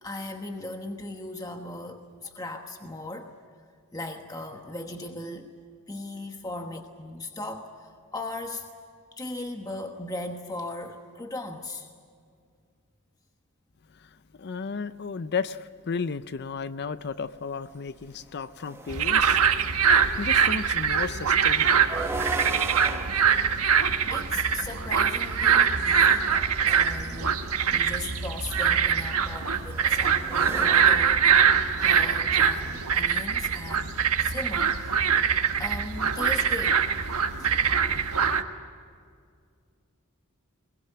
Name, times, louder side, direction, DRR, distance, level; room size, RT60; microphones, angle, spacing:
voice 1, 0.0-3.3 3.9-5.5 5.9-8.7 9.1-11.9 24.1-26.3 26.7-27.4 27.7-31.3 31.8-35.1 35.6-36.8 37.4-37.7, left 2 dB, 15° left, 1.2 m, -38 dB
voice 2, 13.9-19.6 20.2-21.9, left 5 dB, 50° left, 0.6 m, -34 dB
sound 1, 17.3-17.4 17.9-19.8 21.7-24.9 26.2-27.0 28.4-31.8, right 2 dB, 10° right, 1.1 m, -38 dB
sound 2, 18.9-38.4, right 7 dB, 80° right, 1.3 m, -23 dB
22.0 x 21.0 x 9.3 m
head